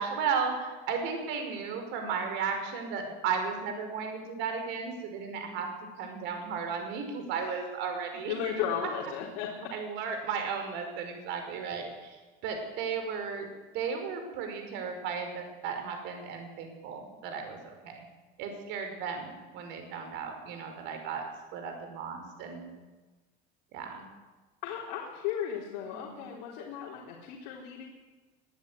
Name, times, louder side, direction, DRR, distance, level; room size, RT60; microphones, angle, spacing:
voice 1, 0.0-5.7 6.0-8.6 9.7-12.2 12.4-13.5 13.7-18.0 18.4-21.2 21.5-22.7 23.7-24.0 25.8-26.3, right 6 dB, 60° right, 5 dB, 5.4 m, -35 dB
voice 2, 8.1-9.5 24.6-27.9, left 9 dB, 80° left, -2 dB, 4.0 m, -35 dB
22.0 x 12.0 x 9.7 m, 1.2 s
cardioid pair, 155°, 21 cm